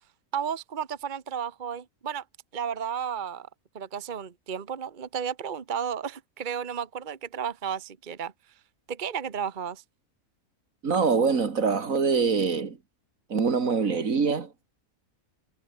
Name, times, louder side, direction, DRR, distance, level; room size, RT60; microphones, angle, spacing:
voice 1, 0.3-2.2 2.5-3.5 3.7-8.3 8.9-9.8, right 7 dB, 40° right, 1.2 m, -33 dB
voice 2, 10.8-12.8 13.3-14.5, right 5 dB, 75° right, 2.4 m, -24 dB
omnidirectional pair, 1.4 m